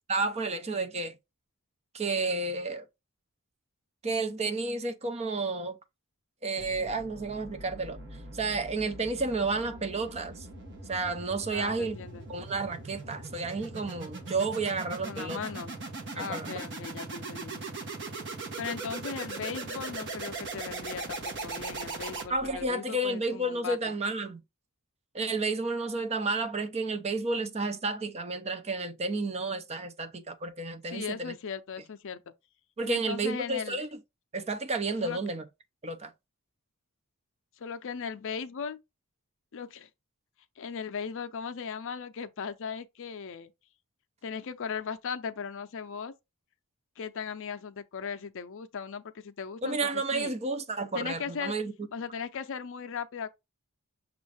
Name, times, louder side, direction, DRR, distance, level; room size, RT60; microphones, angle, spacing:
voice 1, 0.1-1.2 1.9-2.9 4.0-5.8 6.4-8.0 8.3-10.5 10.9-12.0 12.3-15.4 16.2-16.6 22.3-24.4 25.1-31.3 32.8-33.9 34.3-35.4 35.8-36.1 49.6-51.7, right 3 dB, 30° right, 0.5 m, -31 dB
sound 1, 6.6-22.7, right 3 dB, 55° right, 1.1 m, -40 dB
voice 2, 11.5-12.2 15.1-15.8 16.1-17.6 18.6-23.8 30.9-32.3 32.9-33.9 35.0-35.2 37.6-38.8 39.5-39.9 40.6-43.5 44.2-46.1 47.0-50.3 50.9-51.5 51.9-53.3, left 6 dB, 60° left, 0.5 m, -38 dB
6.2 x 2.5 x 3.3 m
head